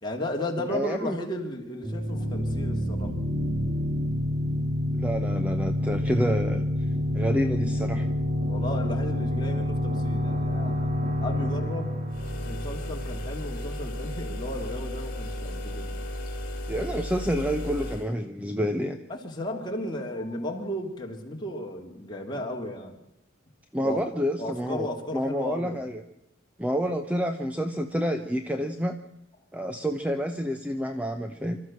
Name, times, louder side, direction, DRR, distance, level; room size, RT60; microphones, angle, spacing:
voice 1, 0.0-3.1 8.5-12.0 12.5-15.9 19.1-23.0 23.8-24.0 24.4-25.8, left 1 dB, 20° left, 0 dB, 3.0 m, -34 dB
voice 2, 0.7-1.2 4.9-6.6 7.1-8.1 16.7-19.0 23.7-24.9 25.1-26.0 26.6-29.0 29.5-31.6, equal, 5° right, 6 dB, 0.9 m, -28 dB
sound 1, 1.8-13.4, left 1 dB, 45° right, 3.8 m, -28 dB
sound 2, 12.1-18.1, left 1 dB, 45° left, 2.9 m, -34 dB
25.5 x 13.5 x 7.7 m, 0.79 s
head